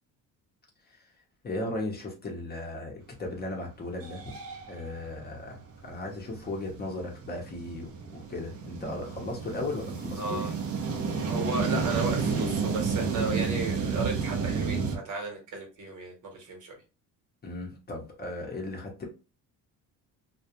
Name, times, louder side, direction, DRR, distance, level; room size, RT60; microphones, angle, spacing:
voice 1, 1.4-4.3 4.7-10.5 17.4-19.1, left 2 dB, 25° left, 0 dB, 0.7 m, -36 dB
sound 1, 3.4-3.5 3.9-15.0, right 5 dB, 40° right, 0.5 m, -31 dB
voice 2, 10.2-10.5 11.3-16.7, right 3 dB, 55° right, 2 dB, 1.1 m, -34 dB
2.3 x 2.2 x 2.8 m, 0.31 s
cardioid pair, 115°, 36 cm